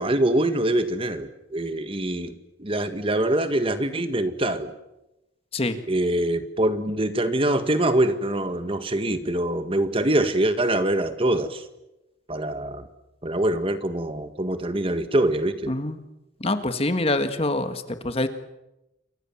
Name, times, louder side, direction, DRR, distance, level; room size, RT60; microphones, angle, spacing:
voice 1, 0.0-4.7 5.9-11.6 12.3-12.8 13.2-15.7, right 1 dB, 30° right, 10 dB, 1.7 m, -24 dB
voice 2, 15.7-16.0 16.4-18.3, left 2 dB, 30° left, 9 dB, 1.8 m, -25 dB
28.5 x 24.5 x 7.3 m, 0.95 s
head